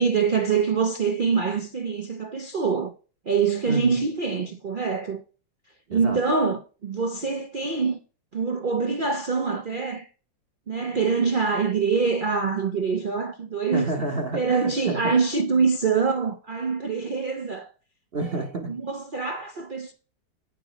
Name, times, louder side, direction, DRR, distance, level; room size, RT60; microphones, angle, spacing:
voice 1, 0.0-2.9 3.3-5.2 5.9-8.0 8.3-10.1 10.7-13.9 14.3-17.7 18.7-19.9, right 5 dB, 80° right, 0.4 m, -25 dB
voice 2, 3.7-4.0 5.9-6.2 13.7-15.1 15.5-15.6 18.1-18.7, right 2 dB, 45° right, 0.9 m, -29 dB
9.0 x 5.9 x 5.0 m
omnidirectional pair, 2.0 m